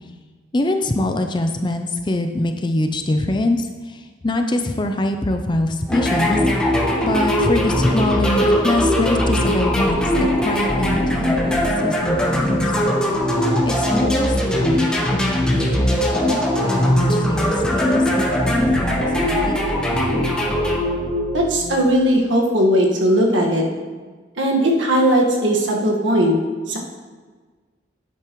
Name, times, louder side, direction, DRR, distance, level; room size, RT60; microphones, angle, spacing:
voice 1, 0.5-3.7 3.9-6.4 7.0-10.1 10.4-12.7 13.6-19.7, left 1 dB, 25° left, 5 dB, 0.5 m, -24 dB
sound 1, 5.9-21.8, equal, 5° left, 1.0 m, -20 dB
voice 2, 21.3-23.6 24.4-26.4 26.7-26.8, equal, 80° right, 0 dB, 1.6 m, -18 dB
10.0 x 8.9 x 3.1 m, 1.4 s
head